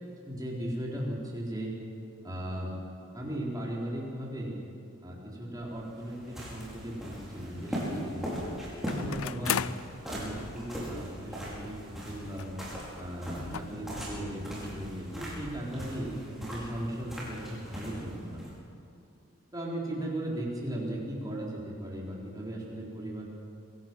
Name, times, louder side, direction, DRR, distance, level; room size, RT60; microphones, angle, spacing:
voice 1, 0.3-1.7 2.2-2.7 3.1-4.6 5.0-8.5 8.9-9.6 10.0-12.5 13.0-18.4 19.5-23.2, right 1 dB, 15° right, -4 dB, 3.9 m, -37 dB
sound 1, 5.6-18.5, equal, ahead, 5.3 m, -40 dB
sound 2, 6.5-6.6 8.9-9.9 10.8-10.9 11.2-11.3 12.4-12.7 13.0-13.1 13.5-13.6, left 9 dB, 80° left, 0.5 m, -34 dB
25.5 x 17.5 x 6.1 m, 2.7 s
head